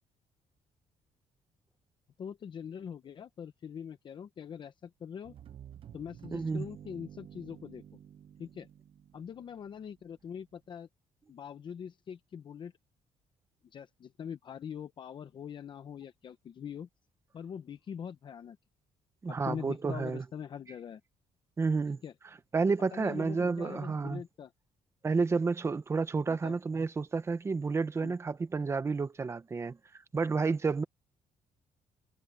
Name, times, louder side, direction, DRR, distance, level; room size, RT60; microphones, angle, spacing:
voice 1, 2.2-5.3 5.9-7.8 8.4-8.7 9.1-10.9 11.3-12.7 13.7-16.9 17.3-18.6 19.3-21.0 22.0-22.1 22.9-24.5 26.3-26.6 28.0-28.1, left 8 dB, 35° left, 0.8 m, -43 dB
sound 1, 5.2-10.1, right 9 dB, 40° right, 0.9 m, -51 dB
voice 2, 6.3-6.6 19.2-20.2 21.6-22.0 22.5-24.2 25.0-29.8 30.1-30.8, right 4 dB, 20° right, 1.0 m, -30 dB
cardioid pair, 165°, 13 cm